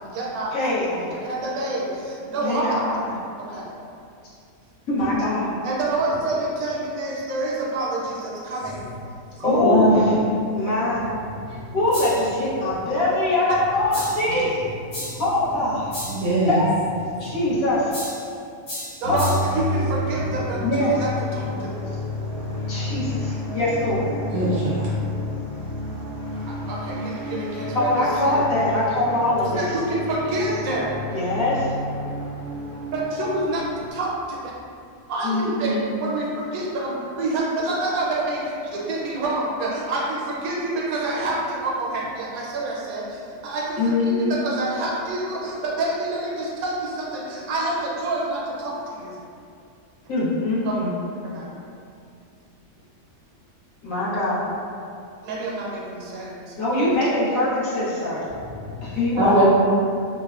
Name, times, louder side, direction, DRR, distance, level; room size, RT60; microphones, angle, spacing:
voice 1, 0.0-0.6 0.9-2.9 3.4-3.7 5.6-8.9 19.0-21.7 26.5-27.9 28.2-28.4 29.5-30.9 32.9-33.6 33.9-34.5 35.1-49.2 50.6-50.7 51.2-51.5 55.2-56.9, right 2 dB, 80° right, -4 dB, 1.0 m, -27 dB
voice 2, 0.5-1.1 2.4-3.2 4.9-5.5 9.4-10.1 10.5-11.1 11.7-14.5 15.2-15.9 16.4-16.7 17.2-17.9 19.1-19.3 20.6-21.0 22.7-24.1 27.7-29.6 31.1-31.7 35.2-35.9 43.8-44.4 50.1-51.0 53.8-54.5 56.6-58.2 58.8-59.4, left 1 dB, 70° left, -9 dB, 1.2 m, -23 dB
voice 3, 9.4-10.0 11.5-11.6 16.1-16.6 24.3-24.9 59.2-59.4, equal, 60° right, -9 dB, 0.7 m, -20 dB
sound 1, 11.9-12.3 13.9-14.3 14.9-15.3 15.9-16.3 17.9-18.3 18.7-19.6, left 1 dB, 55° left, 1.5 m, -34 dB
sound 2, 19.0-33.9, left 1 dB, 15° left, 0.6 m, -30 dB
3.2 x 2.1 x 2.3 m, 2.5 s
omnidirectional pair, 1.5 m